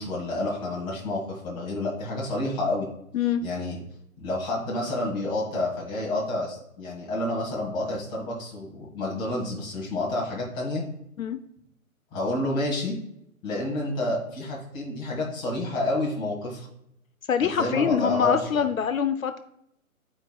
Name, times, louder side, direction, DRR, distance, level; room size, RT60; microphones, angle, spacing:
voice 1, 0.0-2.9 3.4-3.8 4.2-10.8 12.1-12.9 13.4-16.7 17.4-18.7, left 2 dB, 10° left, -4 dB, 1.5 m, -29 dB
voice 2, 17.3-19.4, left 7 dB, 70° left, 9 dB, 0.7 m, -24 dB
12.0 x 4.6 x 2.2 m, 0.77 s
figure-of-eight pair, 150°, 42 cm